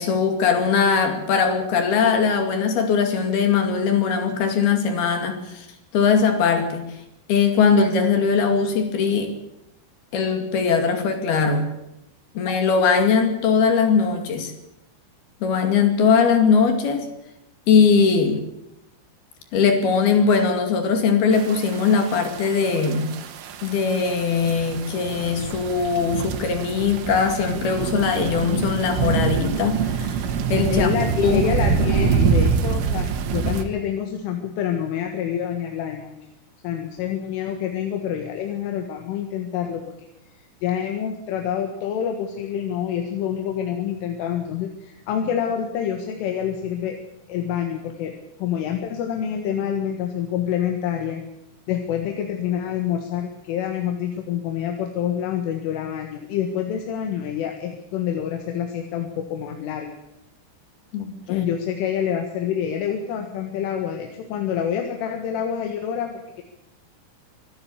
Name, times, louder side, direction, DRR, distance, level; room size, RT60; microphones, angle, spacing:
voice 1, 0.0-5.7 5.9-6.8 7.3-9.3 10.1-11.7 12.4-14.5 15.4-17.1 17.7-18.4 19.5-23.1 23.6-30.2 30.5-30.9 31.2-31.4 60.9-61.4, left 5 dB, 55° left, 7 dB, 4.1 m, -20 dB
sound 1, 21.3-33.6, right 6 dB, 85° right, 4.2 m, -25 dB
voice 2, 30.7-36.2 36.6-39.9 40.4-47.0 47.3-48.1 48.4-51.2 51.7-60.0 61.3-66.4, left 9 dB, 85° left, 4 dB, 4.2 m, -27 dB
24.0 x 13.5 x 8.4 m, 0.85 s
omnidirectional pair, 5.6 m